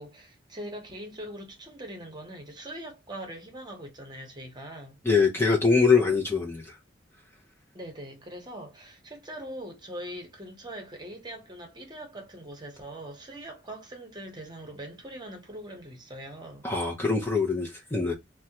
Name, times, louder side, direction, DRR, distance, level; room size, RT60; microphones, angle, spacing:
voice 1, 0.0-5.0 7.7-16.6, right 1 dB, 25° right, 0.9 m, -42 dB
voice 2, 5.0-6.8 16.6-18.1, left 4 dB, 10° left, 0.5 m, -23 dB
3.4 x 2.1 x 2.8 m
head